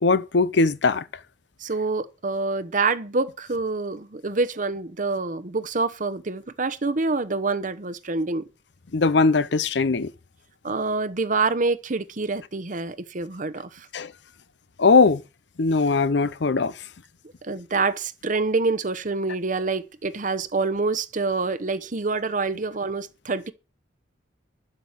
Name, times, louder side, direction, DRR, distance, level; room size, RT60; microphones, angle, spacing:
voice 1, 0.0-1.0 8.9-10.1 13.9-14.1 14.8-15.2 15.6-16.7, left 4 dB, 65° left, 0.7 m, -20 dB
voice 2, 1.6-8.5 10.6-13.9 17.4-23.5, right 3 dB, 45° right, 0.9 m, -26 dB
11.0 x 7.6 x 7.3 m
head